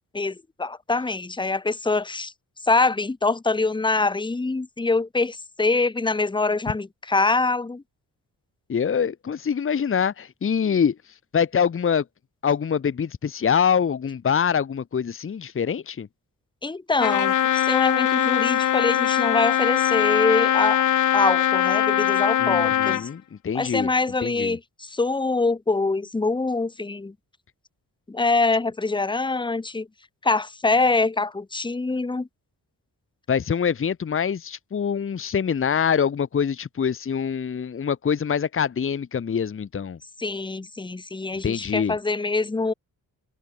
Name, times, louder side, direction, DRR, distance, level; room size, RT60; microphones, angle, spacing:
voice 1, 0.1-2.3 2.6-7.8 16.6-20.8 21.1-23.1 23.5-27.1 28.1-29.9 30.2-32.3 40.2-42.7, left 3 dB, 10° left, 1.2 m, -24 dB
voice 2, 8.7-10.9 11.3-12.0 12.4-16.1 22.4-23.9 24.2-24.6 33.3-40.0 41.4-41.9, left 7 dB, 35° left, 1.2 m, -24 dB
Trumpet, 17.0-23.1, left 11 dB, 55° left, 0.6 m, -21 dB
wide cardioid pair, 180°, 38 cm